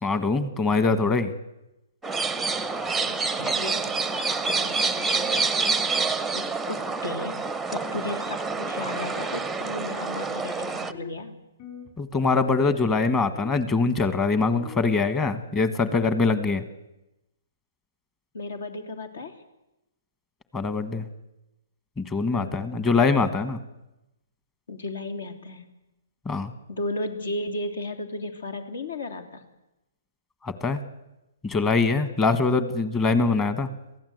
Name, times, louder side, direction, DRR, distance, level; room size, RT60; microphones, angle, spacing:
voice 1, 0.0-1.3 12.0-16.6 20.5-21.0 22.0-23.6 26.2-26.5 30.4-30.8 31.4-33.7, left 4 dB, 15° left, 12 dB, 1.3 m, -23 dB
sound 1, 2.0-10.9, right 4 dB, 5° right, 0.7 m, -27 dB
voice 2, 3.1-5.4 5.7-5.9 6.3-7.4 7.7-11.4 18.3-19.4 22.3-22.6 24.7-25.6 26.7-29.4, left 2 dB, 75° left, 7 dB, 3.1 m, -35 dB
sound 2, 9.8-11.3 11.6-11.9 12.2-13.6 14.0-14.9, left 6 dB, 35° left, 5.0 m, -45 dB
23.0 x 16.0 x 8.0 m, 0.94 s
hypercardioid pair, 155°, 0 cm